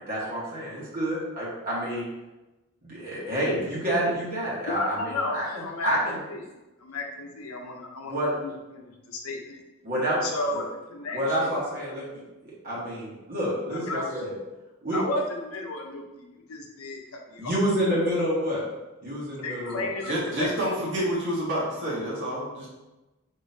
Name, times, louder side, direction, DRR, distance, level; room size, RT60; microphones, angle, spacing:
voice 1, 0.1-2.1 2.8-6.2 8.1-8.3 9.8-10.2 10.5-10.6 11.1-14.4 14.8-15.0 17.4-18.6 19.0-19.9, equal, 40° right, -7 dB, 1.3 m, -28 dB
voice 2, 4.7-5.9 6.3-6.5 6.8-9.6 10.2-10.6 10.9-11.5 13.7-14.0 14.9-17.6 19.4-20.5, left 2 dB, 85° left, 2 dB, 0.8 m, -33 dB
voice 3, 20.0-22.7, equal, 60° right, -6 dB, 1.2 m, -28 dB
5.0 x 3.8 x 2.7 m, 1.1 s
head